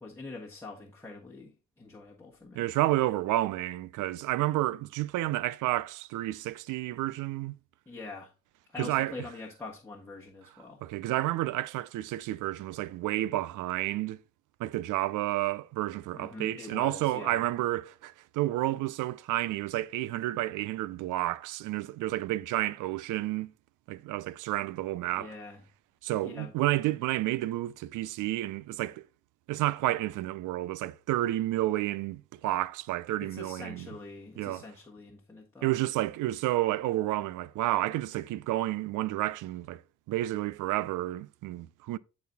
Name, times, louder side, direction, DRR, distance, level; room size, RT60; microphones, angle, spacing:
voice 1, 0.0-2.7 7.9-8.3 8.7-10.8 16.1-17.4 25.1-25.6 26.2-26.5 33.2-35.7, left 3 dB, 10° left, 1.4 m, -44 dB
voice 2, 2.5-7.6 8.8-9.1 10.8-14.2 14.6-23.5 23.9-25.3 26.0-29.0 29.5-33.9 34.4-34.6 35.6-39.8 40.1-42.0, right 16 dB, 85° right, 0.5 m, -30 dB
9.3 x 4.2 x 4.1 m
cardioid pair, 90°, 30 cm